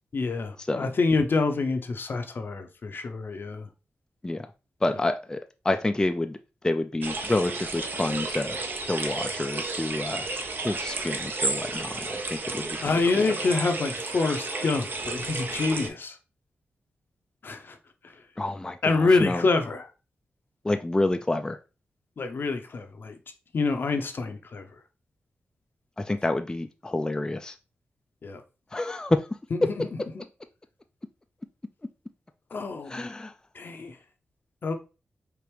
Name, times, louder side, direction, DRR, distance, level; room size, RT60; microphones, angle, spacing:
voice 1, 0.1-3.7 4.9-5.0 12.8-16.2 17.4-17.8 18.8-19.9 22.2-23.1 23.5-24.7 28.2-28.4 29.5-29.9 30.1-30.2 32.5-33.1 33.5-33.9 34.6-34.8, left 3 dB, 55° left, 0.7 m, -26 dB
voice 2, 4.8-5.4 5.6-6.4 6.6-8.6 8.9-10.2 10.6-12.7 13.1-13.3 18.4-19.4 20.6-21.6 26.1-27.5 28.7-29.2 32.9-33.3, left 2 dB, 15° left, 0.4 m, -28 dB
sound 1, 7.0-15.9, right 3 dB, 50° right, 0.7 m, -32 dB
4.6 x 2.5 x 3.3 m
cardioid pair, 60°, 4 cm